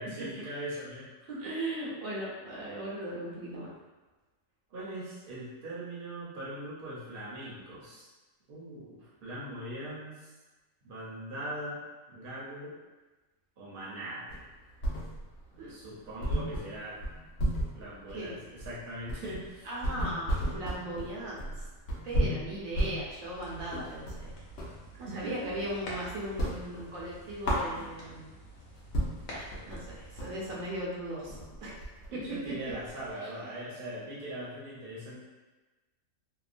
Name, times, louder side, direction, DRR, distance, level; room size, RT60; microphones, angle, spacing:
voice 1, 0.0-1.4 4.7-8.1 8.5-10.3 10.8-11.8 12.1-12.8 13.6-14.3 15.7-17.0 17.7-19.7 24.9-25.5 32.1-35.2, right 1 dB, 50° right, -6 dB, 0.9 m, -41 dB
voice 2, 1.4-3.7 15.6-15.7 18.1-18.3 19.6-21.7 22.0-24.3 25.0-28.3 29.3-31.9 32.5-32.6 33.2-33.3, right 1 dB, 80° right, -5 dB, 1.1 m, -38 dB
sound 1, 14.3-15.5 15.8-15.9 16.2-24.8 25.2-25.9 26.2-28.2 28.6-28.7 28.9-33.1, equal, 60° left, 0.8 m, -34 dB
sound 2, 23.3-30.5, equal, 85° left, 1.1 m, -48 dB
2.8 x 2.2 x 2.4 m, 1.2 s
omnidirectional pair, 1.4 m